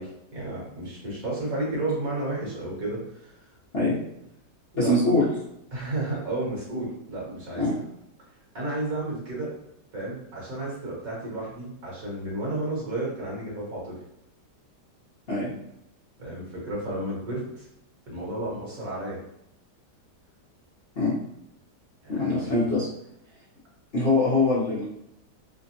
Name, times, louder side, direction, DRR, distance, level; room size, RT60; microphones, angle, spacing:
voice 1, 0.0-3.4 4.7-4.9 5.7-7.7 8.5-9.5 9.9-14.0 16.2-17.7 18.1-19.2 22.0-22.5, right 2 dB, 60° right, -5 dB, 1.5 m, -32 dB
voice 2, 4.7-5.3 7.6-7.8 15.3-15.5 21.0-21.1 22.1-22.8 23.9-24.9, left 2 dB, 50° left, -9 dB, 0.8 m, -23 dB
3.3 x 2.1 x 2.7 m, 0.79 s
omnidirectional pair, 1.8 m